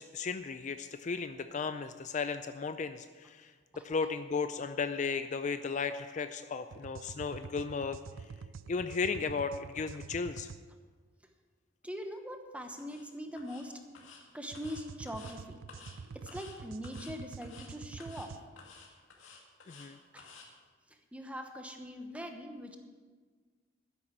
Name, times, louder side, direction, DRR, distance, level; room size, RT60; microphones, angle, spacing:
voice 1, 0.0-3.5 3.8-8.0 8.7-10.5 19.7-20.0, left 5 dB, 40° left, 10 dB, 0.4 m, -35 dB
sound 1, 6.7-10.6 14.5-18.4, right 5 dB, 90° right, 0.4 m, -47 dB
voice 2, 11.8-13.7 14.3-15.6 16.1-18.3 20.1-20.3 21.1-22.8, equal, 5° right, 5 dB, 1.0 m, -42 dB
sound 2, 12.8-13.0 13.4-13.6 13.9-14.2 14.5-15.3 15.7-16.0 16.3-16.6 16.8-17.1 17.4-17.7 18.0-18.3 18.6-19.9 20.2-20.5, left 5 dB, 80° left, 2.4 m, -53 dB
12.5 x 9.9 x 6.0 m, 1.5 s
head